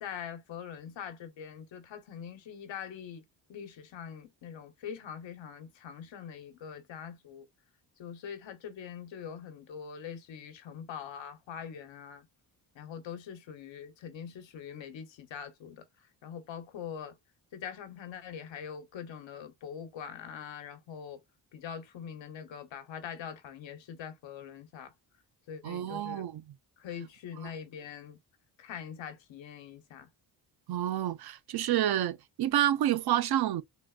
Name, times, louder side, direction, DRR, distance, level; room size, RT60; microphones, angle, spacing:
voice 1, 0.0-3.2 3.5-7.5 8.0-12.3 12.7-17.2 17.5-21.2 21.5-24.9 25.5-26.2 26.8-28.2 28.6-30.1, left 8 dB, 85° left, 1.0 m, -43 dB
voice 2, 25.6-26.4 30.7-33.6, right 12 dB, 60° right, 0.5 m, -29 dB
3.7 x 2.4 x 2.3 m
cardioid pair, 100°, 44 cm